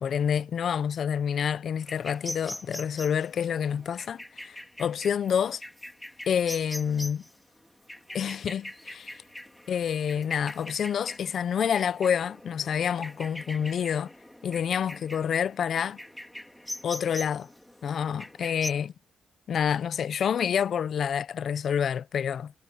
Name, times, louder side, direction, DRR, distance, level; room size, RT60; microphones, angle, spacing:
voice 1, 0.0-5.6 6.3-7.2 8.1-9.2 9.7-14.1 14.4-16.0 16.8-17.5 17.8-18.9 19.5-22.5, left 8 dB, 65° left, 0.7 m, -28 dB
sound 1, 1.8-18.7, left 1 dB, 5° left, 2.8 m, -43 dB
cardioid pair, 70°, 0 cm